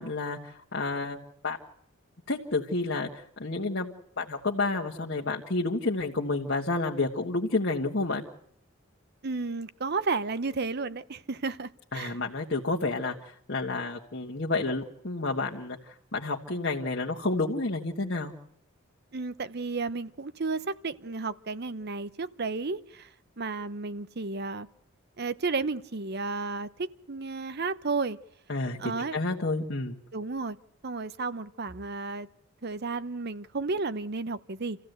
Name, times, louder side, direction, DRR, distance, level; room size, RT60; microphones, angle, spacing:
voice 1, 0.0-1.6 2.3-3.1 3.4-8.2 11.9-18.3 28.5-30.0, left 3 dB, 55° left, 1.6 m, -30 dB
voice 2, 9.2-12.2 19.1-23.1 23.4-24.7 25.2-28.2 28.8-29.2 30.1-30.6 30.8-32.3 32.6-34.8, right 3 dB, 50° right, 0.8 m, -32 dB
27.5 x 15.5 x 8.0 m
head